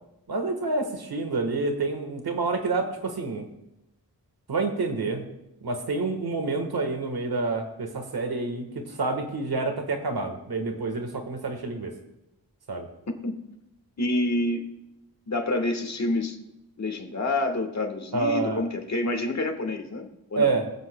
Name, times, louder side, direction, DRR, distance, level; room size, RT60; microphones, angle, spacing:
voice 1, 0.3-3.5 4.5-5.2 5.6-11.9 12.7-12.9 18.1-18.6 20.4-20.7, right 3 dB, 85° right, 5 dB, 1.4 m, -28 dB
voice 2, 14.0-14.7 15.3-16.4 16.8-20.5, left 2 dB, 45° left, 5 dB, 1.4 m, -28 dB
23.0 x 8.0 x 2.2 m, 0.88 s
wide cardioid pair, 90°, 36 cm